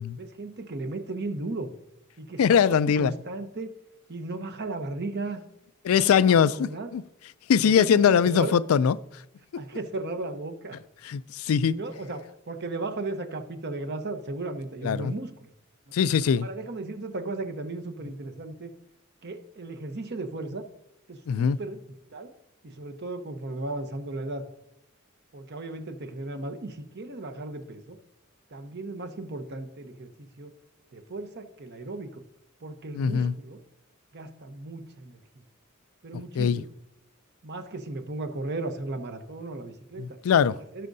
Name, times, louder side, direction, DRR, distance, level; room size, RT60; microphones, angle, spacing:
voice 1, 0.2-1.7 2.2-3.7 4.1-5.4 6.0-6.9 7.6-8.6 9.6-10.8 11.7-15.3 16.4-18.7 19.2-20.6 21.1-21.8 22.1-22.3 22.6-24.4 25.3-28.0 28.5-30.5 30.9-32.2 32.6-33.6 34.1-35.2 36.0-36.6 37.4-40.1 40.7-40.9, right 2 dB, 55° right, 0.9 m, -35 dB
voice 2, 2.4-3.1 5.8-7.0 7.5-9.0 9.5-9.6 11.0-11.8 14.8-15.1 15.9-16.5 21.3-21.6 32.9-33.3 36.1-36.6 40.0-40.5, left 7 dB, 85° left, 0.3 m, -22 dB
16.5 x 6.3 x 2.7 m
head